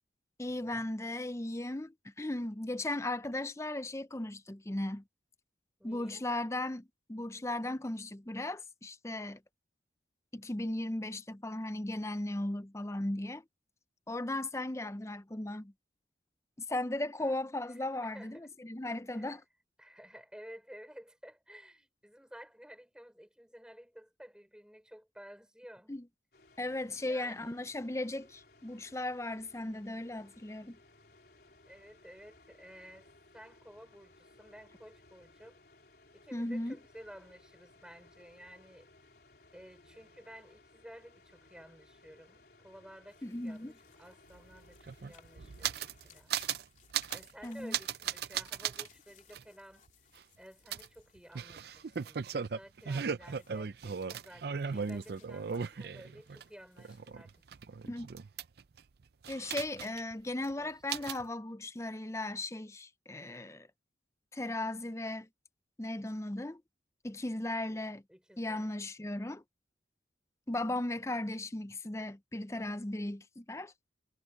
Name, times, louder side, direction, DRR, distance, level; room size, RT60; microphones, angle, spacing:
voice 1, 0.4-5.0 5.8-9.4 10.3-13.4 14.1-15.7 16.6-19.4 25.9-26.0 26.6-30.8 36.3-36.8 43.2-43.7 47.4-47.8 57.9-58.1 59.3-63.7 64.3-65.3 65.8-66.6 67.0-68.0 68.4-69.4 70.5-73.7, left 1 dB, 15° left, 0.6 m, -37 dB
voice 2, 5.8-6.3 17.2-17.4 17.7-18.5 19.1-19.3 19.8-25.9 27.0-27.5 31.6-35.6 36.1-38.9 39.5-46.3 47.1-49.9 50.4-57.4 60.6-60.7 61.0-61.1 68.1-68.7, equal, 5° right, 4.7 m, -53 dB
sound 1, 26.3-46.2, left 2 dB, 60° left, 4.1 m, -62 dB
sound 2, 43.1-57.6, left 6 dB, 40° left, 3.0 m, -64 dB
sound 3, 44.3-44.4 44.6-46.0 46.3-46.6 46.9-47.3 47.7-48.9 49.3-49.4 50.7-56.4 56.8-58.8 59.2-60.1 60.4-60.5 60.9-61.2, right 7 dB, 60° right, 0.5 m, -37 dB
head